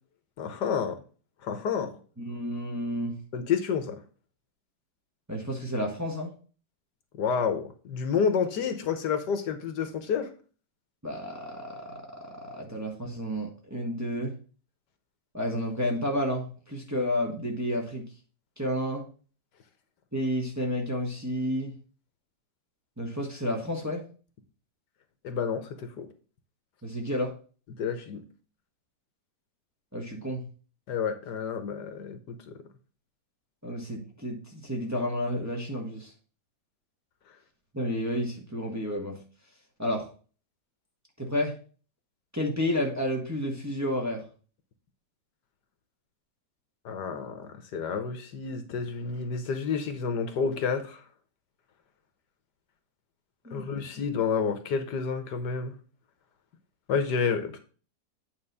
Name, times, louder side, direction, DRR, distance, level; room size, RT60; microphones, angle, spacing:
voice 1, 0.4-1.0 1.4-1.9 3.3-4.0 7.2-10.3 25.2-26.1 27.8-28.2 30.9-32.5 46.8-51.0 53.5-55.8 56.9-57.6, left 6 dB, 70° left, 8 dB, 1.5 m, -29 dB
voice 2, 2.2-3.2 5.3-6.3 11.0-14.3 15.3-18.1 18.6-19.0 20.1-21.7 23.0-24.0 26.8-27.3 29.9-30.5 33.6-36.1 37.7-39.2 39.8-40.1 41.2-41.5 42.3-44.2 53.4-53.7, equal, 10° right, -1 dB, 1.4 m, -31 dB
8.9 x 4.0 x 5.4 m, 0.38 s
omnidirectional pair, 1.9 m